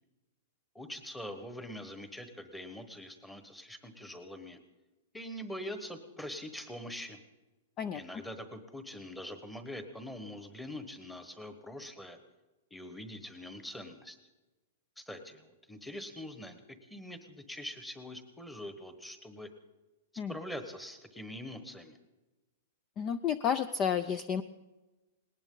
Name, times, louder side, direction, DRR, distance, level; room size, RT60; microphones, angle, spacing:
voice 1, 0.7-4.6 5.1-7.2 7.9-12.2 12.7-14.2 15.0-19.5 20.3-22.0, left 1 dB, 5° left, 8 dB, 1.2 m, -44 dB
voice 2, 23.0-24.4, left 7 dB, 25° left, 14 dB, 0.5 m, -31 dB
19.5 x 18.5 x 3.9 m, 1.1 s
supercardioid pair, 160°, 0 cm